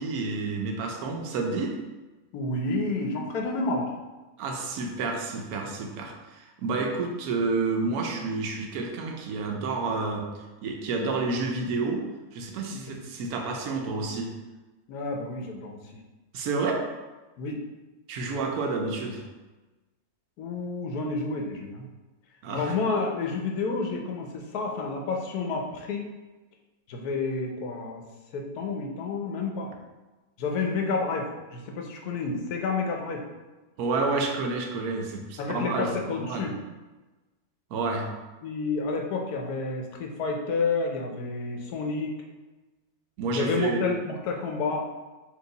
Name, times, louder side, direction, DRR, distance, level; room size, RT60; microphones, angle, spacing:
voice 1, 0.0-1.8 4.4-12.0 12.3-14.3 16.3-16.9 18.1-19.2 22.4-22.7 33.8-36.5 37.7-38.1 43.2-43.9, right 3 dB, 80° right, 2 dB, 1.2 m, -29 dB
voice 2, 2.3-4.0 12.9-13.0 14.9-15.8 17.4-17.6 20.4-21.9 22.5-26.0 26.9-28.0 28.3-29.7 30.4-33.2 35.4-36.5 38.4-42.2 43.3-44.8, left 3 dB, 90° left, 2 dB, 1.2 m, -30 dB
4.6 x 2.9 x 3.9 m, 1.2 s
omnidirectional pair, 1.6 m